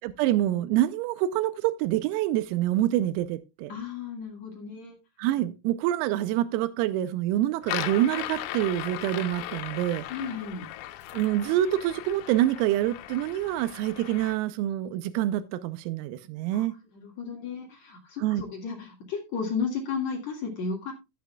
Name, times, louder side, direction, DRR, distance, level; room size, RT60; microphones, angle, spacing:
voice 1, 0.0-3.7 5.2-10.0 11.1-16.7 18.2-18.4, right 13 dB, 90° right, 3.4 m, -26 dB
voice 2, 3.7-5.0 10.1-10.7 16.5-16.6 16.9-20.9, left 5 dB, 55° left, 1.9 m, -34 dB
sound 1, 7.6-14.4, left 13 dB, 90° left, 3.6 m, -37 dB
15.5 x 8.2 x 2.3 m
omnidirectional pair, 6.0 m